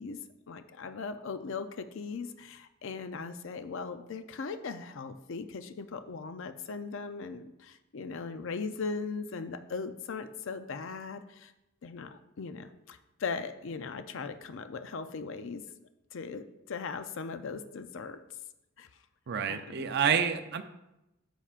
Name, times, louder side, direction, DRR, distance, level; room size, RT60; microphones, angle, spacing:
voice 1, 0.0-11.5 11.8-15.6 16.1-18.2 18.8-18.9 19.5-20.3, left 4 dB, 65° left, 10 dB, 0.5 m, -39 dB
voice 2, 19.3-20.6, right 7 dB, 50° right, 7 dB, 0.5 m, -28 dB
9.9 x 7.2 x 2.5 m, 0.91 s
head